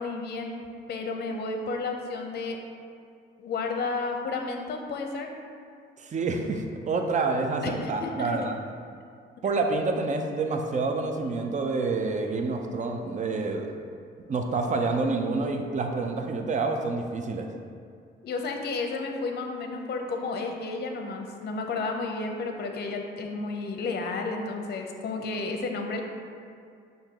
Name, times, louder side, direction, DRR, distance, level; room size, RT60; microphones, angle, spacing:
voice 1, 0.0-2.6 3.4-5.3 7.6-8.5 18.2-26.0, left 3 dB, 55° left, 3 dB, 0.6 m, -32 dB
voice 2, 6.0-8.6 9.4-13.7 14.3-17.5, right 3 dB, 40° right, 4 dB, 0.5 m, -28 dB
5.7 x 2.7 x 3.5 m, 2.3 s
cardioid pair, 90°, 20 cm